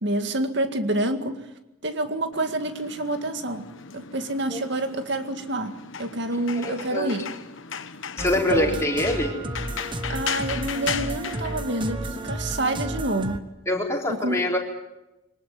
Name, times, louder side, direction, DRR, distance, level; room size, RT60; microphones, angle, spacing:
voice 1, 0.0-1.4 1.8-3.7 3.9-5.7 6.0-7.3 8.5-8.8 10.1-13.4 14.1-14.4, right 2 dB, 55° right, 7 dB, 2.0 m, -27 dB
sound 1, 2.3-12.4, left 7 dB, 65° left, 1.2 m, -37 dB
voice 2, 6.5-7.2 8.2-9.3 13.7-14.6, left 1 dB, 15° left, -1 dB, 4.3 m, -25 dB
sound 2, 8.2-13.4, right 1 dB, 25° right, 1.2 m, -32 dB
24.5 x 19.0 x 9.5 m, 0.94 s
head